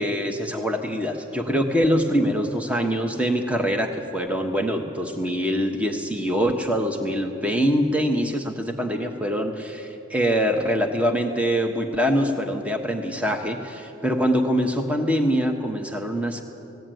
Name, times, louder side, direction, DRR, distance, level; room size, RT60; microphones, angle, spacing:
voice 1, 0.0-16.4, equal, 5° right, 3 dB, 1.3 m, -24 dB
19.0 x 16.5 x 9.2 m, 2.8 s
head